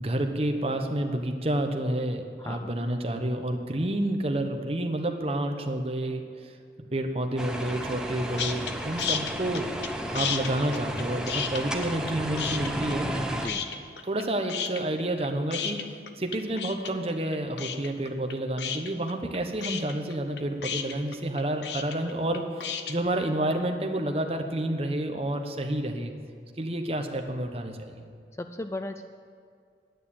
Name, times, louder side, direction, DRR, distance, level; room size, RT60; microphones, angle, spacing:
voice 1, 0.0-6.5 6.9-9.7 10.1-13.1 14.0-15.8 16.2-26.1 26.6-28.0, right 1 dB, 35° right, 5 dB, 1.0 m, -29 dB
voice 2, 2.4-2.7 10.0-10.3 13.3-13.7 28.4-29.0, left 2 dB, 15° left, 8 dB, 0.3 m, -36 dB
sound 1, 7.4-13.5, equal, 5° right, 0.8 m, -33 dB
sound 2, 8.4-8.7 9.0-9.9 10.2-12.1 12.4-13.2 13.5-14.2 14.5-22.9, left 7 dB, 75° left, 0.8 m, -32 dB
10.5 x 9.3 x 8.7 m, 2.2 s
head